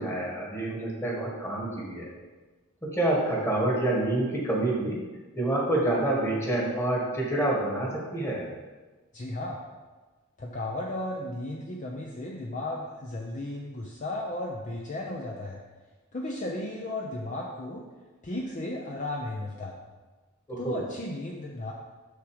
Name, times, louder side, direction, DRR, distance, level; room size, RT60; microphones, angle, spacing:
voice 1, 0.0-2.1 2.8-5.0 5.4-8.5 20.5-20.8, right 1 dB, 15° left, -3 dB, 1.7 m, -27 dB
voice 2, 9.1-9.6 10.4-15.6 16.1-17.8 18.2-19.8 20.6-21.7, left 1 dB, 35° left, -2 dB, 0.7 m, -34 dB
6.6 x 6.2 x 5.0 m, 1.3 s
head